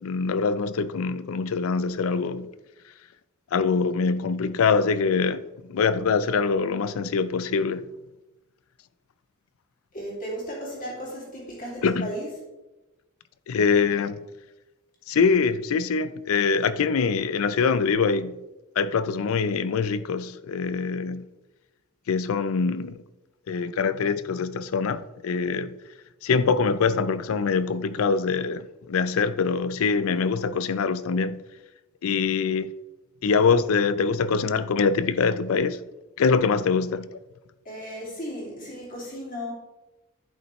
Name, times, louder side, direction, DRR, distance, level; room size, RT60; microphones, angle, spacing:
voice 1, 0.0-2.5 3.5-7.8 11.8-12.1 13.5-14.2 15.1-18.4 18.8-21.3 22.1-23.0 23.5-25.7 26.2-31.4 32.0-32.7 33.2-35.8 36.2-37.2, left 5 dB, 80° left, 0.4 m, -24 dB
voice 2, 9.9-12.3 37.6-39.5, equal, 40° left, 2.5 m, -35 dB
10.5 x 5.7 x 3.1 m
head